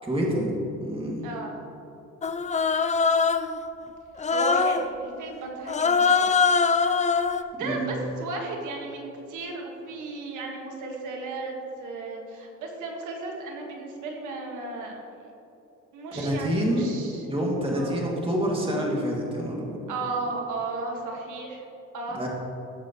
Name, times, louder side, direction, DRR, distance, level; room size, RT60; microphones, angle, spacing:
voice 1, 0.1-0.5 0.8-1.3 7.6-7.9 16.1-16.9 17.3-19.8 22.1-22.3, equal, 20° right, -3 dB, 2.4 m, -27 dB
voice 2, 1.2-1.6 4.3-6.3 7.5-15.0 15.9-17.3 17.7-18.0 19.9-21.6 21.9-22.3, right 3 dB, 85° right, 0 dB, 1.8 m, -34 dB
Human voice, 2.2-3.6 4.2-4.9 5.7-7.4, left 5 dB, 25° left, 0.5 m, -22 dB
18.0 x 6.9 x 3.1 m, 2.9 s
cardioid pair, 90°, 30 cm